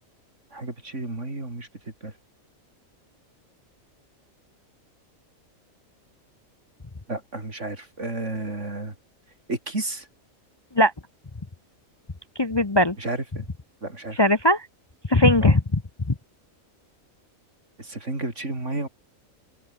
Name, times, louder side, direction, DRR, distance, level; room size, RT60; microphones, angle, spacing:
voice 1, 0.5-1.7 2.0-2.1 7.1-8.9 9.5-10.1 13.0-13.5 13.8-14.2 15.4-15.6 17.8-18.9, right 2 dB, 55° right, 5.4 m, -32 dB
voice 2, 12.4-13.0 14.1-14.7 15.1-15.8 16.1-16.2, left 1 dB, 20° left, 1.0 m, -19 dB
open air
omnidirectional pair, 1.4 m